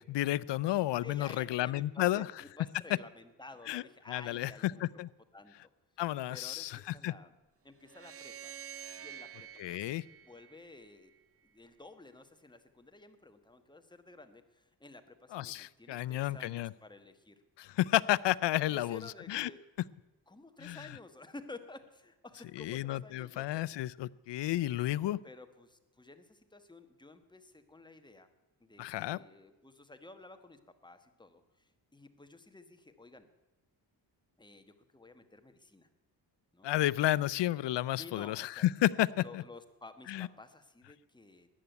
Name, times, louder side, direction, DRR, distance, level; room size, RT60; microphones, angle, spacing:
voice 1, 0.0-2.3 3.7-3.8 4.1-5.1 6.0-7.1 9.6-10.0 15.3-16.7 17.6-19.0 19.3-19.5 20.6-20.8 22.6-25.2 28.8-29.2 36.6-39.1 39.3-39.4 40.1-40.3, left 15 dB, 75° left, 20 dB, 0.6 m, -31 dB
voice 2, 1.0-4.8 5.3-5.5 6.3-7.3 7.6-8.5 9.0-10.0 10.2-11.1 11.4-17.4 18.6-19.6 20.3-23.6 25.2-28.3 28.6-33.3 34.4-35.9 36.5-36.7 38.0-38.7 39.2-41.5, left 2 dB, 10° left, 8 dB, 1.2 m, -52 dB
sound 1, 7.8-11.1, right 9 dB, 30° right, 0.9 m, -48 dB
14.0 x 9.8 x 9.2 m, 1.1 s
cardioid pair, 110°, 43 cm